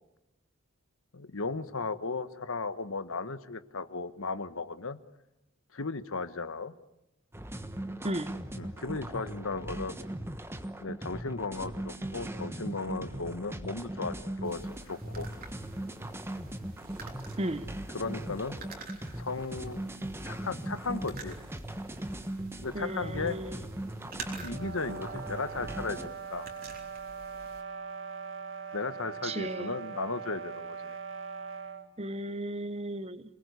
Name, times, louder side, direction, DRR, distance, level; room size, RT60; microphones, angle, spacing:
voice 1, 1.1-5.0 5.7-6.7 8.6-10.0 10.8-14.1 14.4-14.6 14.9-15.3 17.9-18.6 19.2-19.8 20.2-21.4 22.6-23.4 24.1-26.5 28.7-30.9, left 3 dB, 75° left, 1.3 m, -36 dB
sound 1, 7.3-26.1, right 1 dB, 10° right, 1.2 m, -39 dB
sound 2, 14.4-27.6, right 4 dB, 45° right, 3.6 m, -50 dB
voice 2, 22.7-23.5 29.2-29.7 32.0-33.2, right 1 dB, 30° right, 1.0 m, -34 dB
sound 3, 24.4-31.9, right 5 dB, 65° right, 1.9 m, -41 dB
28.0 x 20.5 x 8.3 m
head